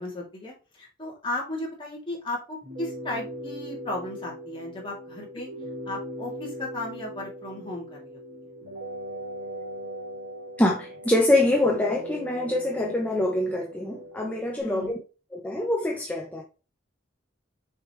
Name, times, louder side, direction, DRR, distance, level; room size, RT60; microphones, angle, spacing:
voice 1, 0.0-5.5 5.9-8.2 14.6-14.9, left 1 dB, 25° left, 2.9 m, -35 dB
sound 1, 2.6-14.6, right 1 dB, 80° right, 3.1 m, -39 dB
voice 2, 10.6-15.0 15.3-16.4, left 1 dB, 10° left, 0.8 m, -25 dB
6.5 x 5.3 x 3.2 m
head